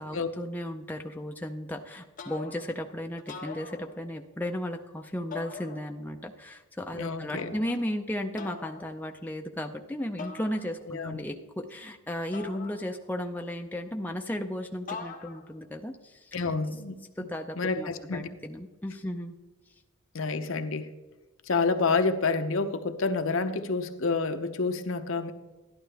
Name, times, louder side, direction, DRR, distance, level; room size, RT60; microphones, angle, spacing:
voice 1, 0.0-16.4 17.2-19.3, left 1 dB, 10° left, 3 dB, 0.5 m, -35 dB
sound 1, 2.2-2.8 3.2-4.3 5.3-6.2 7.4-7.9 8.4-8.9 10.2-11.0 12.3-13.3 14.9-15.6, left 4 dB, 40° left, 1.1 m, -43 dB
voice 2, 7.0-7.6 10.9-11.2 16.3-17.0 17.6-18.3 20.1-20.9 21.5-25.3, left 4 dB, 65° left, 8 dB, 0.7 m, -28 dB
12.0 x 11.5 x 3.4 m, 1.1 s
head